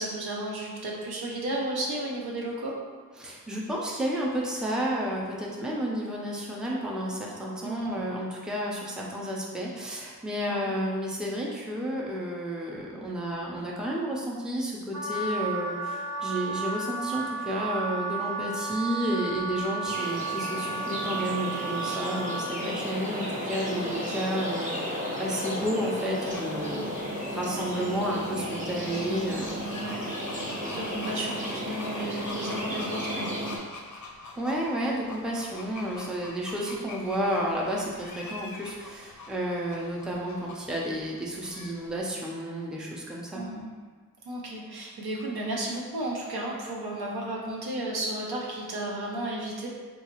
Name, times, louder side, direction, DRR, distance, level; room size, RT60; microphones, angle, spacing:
voice 1, 0.0-2.7 7.6-8.0 10.5-10.6 23.7-24.0 29.7-30.1 30.7-33.4 43.3-43.7 44.2-49.7, right 1 dB, 80° right, -3 dB, 0.7 m, -33 dB
voice 2, 3.2-26.9 27.3-29.6 34.4-43.4, equal, ahead, -3 dB, 0.5 m, -31 dB
Wind instrument woodwind instrument, 14.9-22.5, right 4 dB, 45° right, 0.6 m, -33 dB
sound 1, 19.8-33.6, equal, 20° right, 0.8 m, -34 dB
sound 2, 26.2-42.0, left 3 dB, 50° left, 0.5 m, -45 dB
3.8 x 2.3 x 3.0 m, 1.5 s
wide cardioid pair, 80°, 38 cm